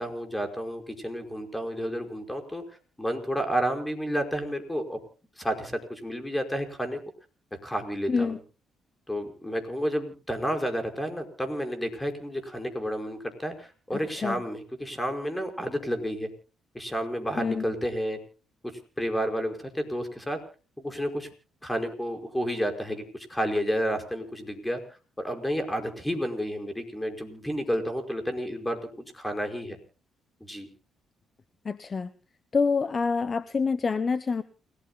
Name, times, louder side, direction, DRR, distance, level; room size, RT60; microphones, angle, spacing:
voice 1, 0.0-2.6 3.0-5.0 5.4-7.0 7.6-8.4 9.1-16.3 16.7-18.2 18.6-20.4 20.8-21.3 21.6-24.8 25.2-28.8 29.1-29.8 30.4-30.7, equal, 10° left, 5 dB, 5.0 m, -31 dB
voice 2, 8.1-8.4 14.2-14.4 17.4-17.6 31.6-32.1 32.5-34.4, left 5 dB, 35° left, 15 dB, 0.9 m, -26 dB
29.0 x 18.0 x 2.2 m, 0.37 s
cardioid pair, 90°, 0 cm